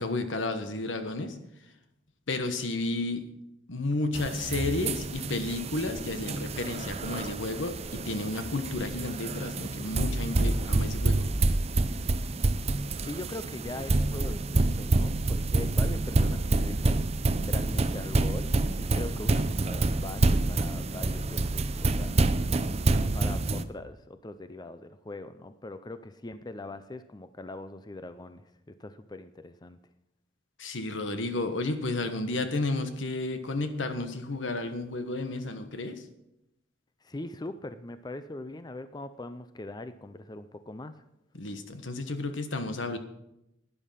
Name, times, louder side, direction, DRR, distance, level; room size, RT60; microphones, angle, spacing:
voice 1, 0.0-1.3 2.3-3.3 3.7-7.8 8.0-11.2 30.6-36.0 41.3-43.0, left 2 dB, 80° left, 8 dB, 1.3 m, -32 dB
sound 1, 4.1-23.6, right 2 dB, 35° right, 0.6 m, -28 dB
voice 2, 13.0-22.2 23.1-29.8 37.0-41.0, left 2 dB, 20° left, 11 dB, 0.5 m, -41 dB
12.0 x 10.0 x 5.7 m, 0.86 s
head